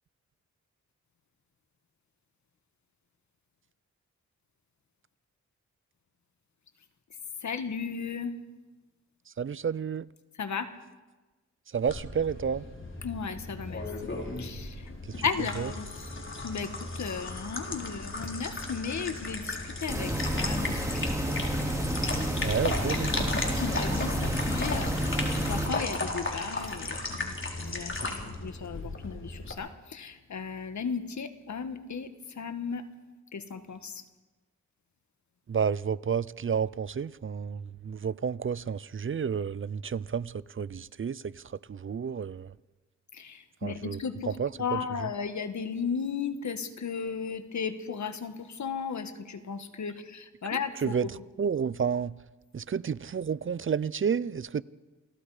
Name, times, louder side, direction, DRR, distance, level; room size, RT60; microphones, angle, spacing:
voice 1, 7.4-8.3 10.4-10.7 13.0-13.8 14.4-14.7 15.2-15.9 16.4-16.7 17.0-21.1 23.2-27.3 27.6-32.1 32.4-32.8 33.3-34.0 43.2-51.1, left 6 dB, 70° left, 1.7 m, -35 dB
voice 2, 9.4-10.1 11.7-12.6 15.6-15.7 22.4-23.3 35.5-41.2 41.7-42.5 43.6-44.0 44.3-45.1 50.8-51.1 51.4-52.1 52.5-54.6, right 7 dB, 45° right, 0.6 m, -30 dB
sound 1, 11.9-29.5, left 2 dB, 40° left, 4.0 m, -36 dB
sound 2, 19.9-25.7, equal, 10° right, 5.7 m, -30 dB
29.0 x 18.0 x 5.0 m
cardioid pair, 60°, 30 cm